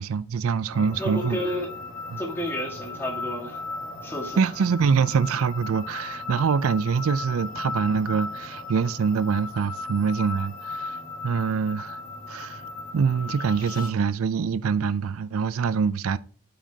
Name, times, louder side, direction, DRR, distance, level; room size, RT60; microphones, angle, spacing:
voice 1, 0.0-1.4 2.1-2.2 4.4-11.0 11.2-12.0 12.3-12.6 12.9-16.2, right 6 dB, 70° right, 0.4 m, -24 dB
sound 1, 0.7-13.9, left 3 dB, 40° left, 1.6 m, -36 dB
voice 2, 1.0-1.7 2.2-3.6 4.0-4.4, equal, 10° left, 1.7 m, -31 dB
8.9 x 5.1 x 2.8 m
head